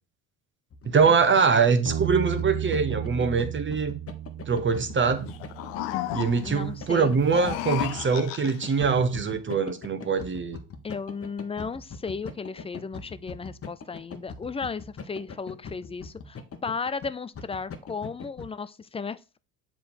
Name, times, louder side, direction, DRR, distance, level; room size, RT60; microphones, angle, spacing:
sound 1, 0.7-18.5, left 5 dB, 35° left, 1.2 m, -41 dB
voice 1, 0.8-4.0 4.5-5.3 6.1-10.6, right 5 dB, 30° right, 1.1 m, -23 dB
Bass guitar, 1.9-8.1, right 12 dB, 45° right, 0.8 m, -35 dB
sound 2, 5.3-6.6 7.2-8.8, left 15 dB, 80° left, 0.6 m, -33 dB
voice 2, 6.4-7.1 10.8-19.4, left 5 dB, 15° left, 0.4 m, -35 dB
7.6 x 3.4 x 4.4 m
hypercardioid pair, 75°, 40 cm